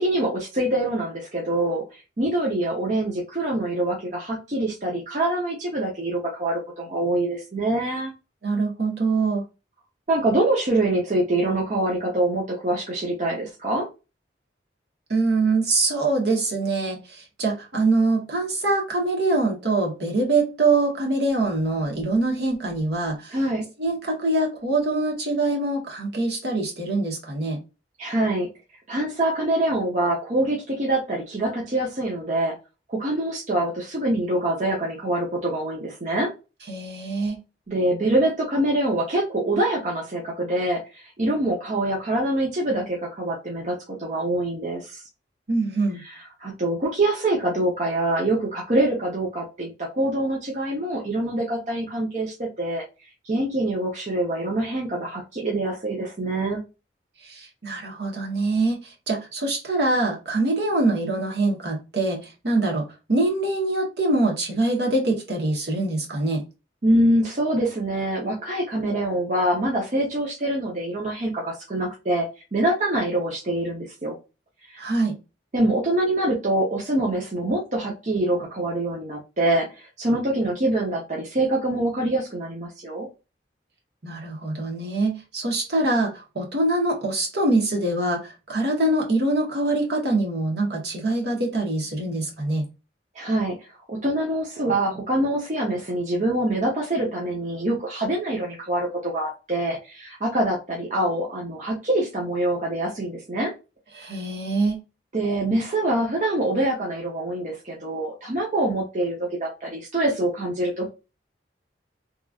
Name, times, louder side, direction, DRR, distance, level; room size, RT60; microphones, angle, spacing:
voice 1, 0.0-8.1 10.1-13.9 23.3-23.7 28.0-28.5 28.9-32.5 32.9-36.3 37.7-45.0 46.0-46.1 46.4-52.8 53.2-56.6 66.8-72.3 72.5-74.2 74.7-74.8 75.5-83.1 93.1-103.5 105.1-110.9, right 1 dB, 40° right, 0.7 m, -25 dB
voice 2, 8.4-9.4 15.1-23.4 23.8-27.6 36.7-37.4 45.5-46.0 57.2-66.4 74.8-75.2 84.0-92.6 103.9-104.8, right 2 dB, 65° right, 1.1 m, -24 dB
3.0 x 2.4 x 2.3 m
head